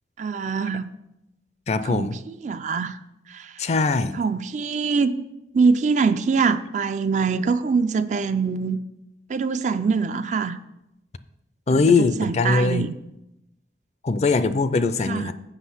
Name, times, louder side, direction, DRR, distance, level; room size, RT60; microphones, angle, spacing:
voice 1, 0.2-0.9 1.8-2.1 2.4-3.0 3.3-3.5 4.2-5.1 5.5-8.8 9.3-10.6 11.7-12.9 15.1-15.3, right 5 dB, 40° right, 12 dB, 0.4 m, -23 dB
voice 2, 1.7-2.2 3.6-4.2 11.7-12.9 14.0-15.3, left 3 dB, 40° left, 12 dB, 0.4 m, -21 dB
8.0 x 6.3 x 5.6 m, 0.89 s
head